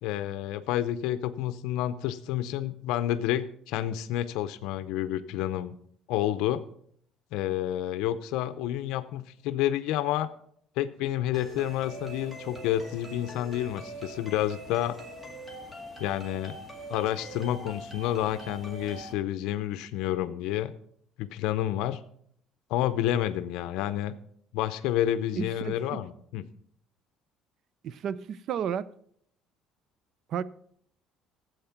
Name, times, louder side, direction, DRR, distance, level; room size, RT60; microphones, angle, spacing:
voice 1, 0.0-5.7 6.1-6.6 7.3-10.3 10.8-15.0 16.0-16.6 16.9-20.7 21.2-22.0 22.7-24.1 24.5-26.4, left 12 dB, 80° left, 0.6 m, -29 dB
sound 1, 11.3-19.1, right 1 dB, 10° right, 2.0 m, -43 dB
voice 2, 25.4-26.0 27.8-28.9 30.3-30.4, right 8 dB, 50° right, 0.5 m, -32 dB
12.5 x 7.9 x 5.8 m
cardioid pair, 140°, 0 cm